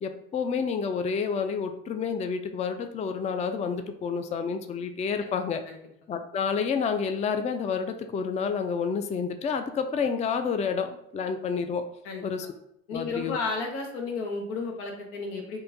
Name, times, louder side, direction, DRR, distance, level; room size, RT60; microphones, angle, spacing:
voice 1, 0.0-5.6 6.1-11.8 12.2-12.5 12.9-13.4, left 6 dB, 25° left, 8 dB, 0.3 m, -29 dB
voice 2, 12.9-15.6, left 4 dB, 90° left, 1 dB, 0.8 m, -33 dB
3.6 x 2.4 x 2.7 m, 0.74 s
supercardioid pair, 75°, 31 cm